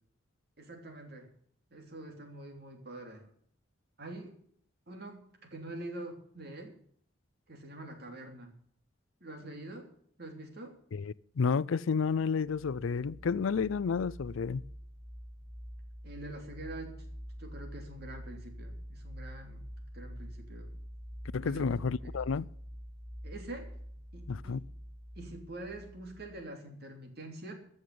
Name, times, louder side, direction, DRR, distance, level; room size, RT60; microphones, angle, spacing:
voice 1, 0.6-1.3 1.7-3.3 4.0-4.4 4.9-6.8 7.5-8.5 9.2-9.9 10.2-10.8 16.0-17.1 17.4-19.6 19.9-20.8 21.4-22.1 23.2-23.7 24.1-24.6 25.1-27.5, right 2 dB, 55° right, 3.1 m, -45 dB
voice 2, 10.9-14.7 21.3-22.5 24.3-24.6, left 5 dB, 85° left, 0.5 m, -31 dB
sound 1, 12.4-26.5, equal, 5° left, 1.1 m, -46 dB
14.5 x 6.6 x 9.4 m
head